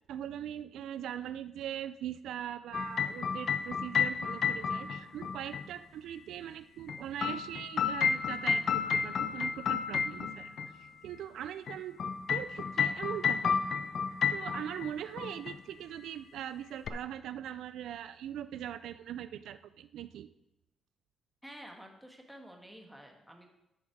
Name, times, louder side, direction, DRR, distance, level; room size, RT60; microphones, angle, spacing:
voice 1, 0.1-13.6 14.1-20.3, right 10 dB, 80° right, 13 dB, 0.3 m, -41 dB
sound 1, 2.7-5.7 6.9-10.7 11.7-14.9 15.2-15.6 16.9-17.0, left 6 dB, 55° left, 0.6 m, -31 dB
voice 2, 21.4-23.5, equal, 5° right, 2 dB, 1.7 m, -50 dB
10.5 x 6.3 x 4.7 m, 0.90 s
cardioid pair, 90°, 0 cm